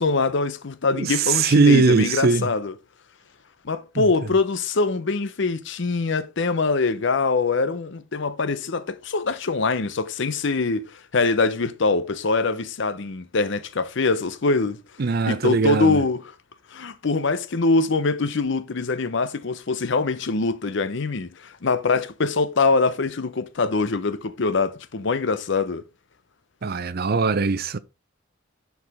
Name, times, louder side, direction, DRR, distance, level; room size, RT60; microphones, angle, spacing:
voice 1, 0.0-2.7 3.6-14.8 15.2-16.2 16.7-25.8, left 3 dB, 65° left, 0.7 m, -23 dB
voice 2, 1.0-2.5 4.0-4.1 15.0-16.0 26.6-27.8, right 4 dB, 50° right, 0.5 m, -20 dB
10.5 x 4.8 x 3.5 m
head